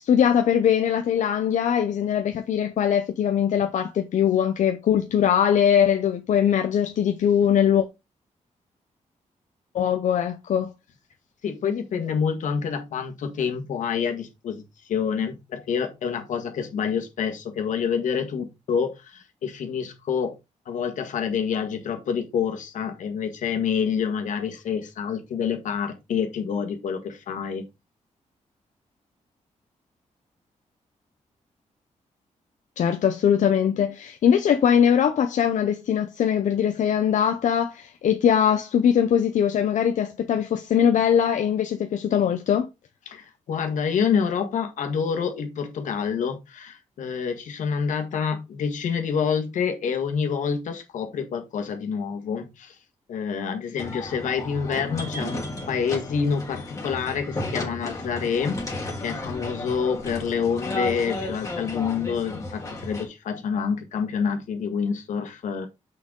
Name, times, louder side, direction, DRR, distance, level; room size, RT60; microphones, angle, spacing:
voice 1, 0.0-7.9 9.7-10.7 32.8-42.7, left 8 dB, 75° left, 0.8 m, -21 dB
voice 2, 11.4-20.4 20.7-27.6 43.1-52.7 53.1-58.6 59.0-65.7, left 6 dB, 90° left, 1.7 m, -27 dB
sound 1, 53.8-63.1, left 2 dB, 25° left, 2.1 m, -33 dB
6.3 x 5.9 x 3.8 m
wide cardioid pair, 165°, 13 cm